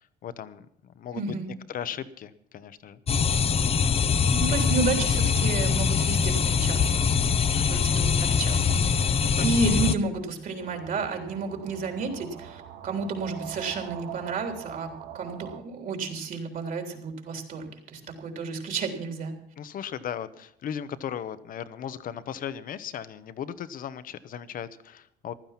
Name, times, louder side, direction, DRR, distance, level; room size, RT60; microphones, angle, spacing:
voice 1, 0.2-1.4 1.7-3.0 7.6-7.8 9.2-9.5 18.0-18.1 19.6-25.3, left 9 dB, 55° left, 14 dB, 1.1 m, -37 dB
voice 2, 1.1-1.5 4.3-7.3 7.7-8.9 9.2-19.3, right 3 dB, 55° right, 4 dB, 3.5 m, -31 dB
sound 1, 3.1-9.9, left 6 dB, 35° left, 0.8 m, -23 dB
sound 2, 10.6-15.6, right 11 dB, 80° right, 1.6 m, -43 dB
15.0 x 12.5 x 5.8 m, 0.72 s
cardioid pair, 110°, 17 cm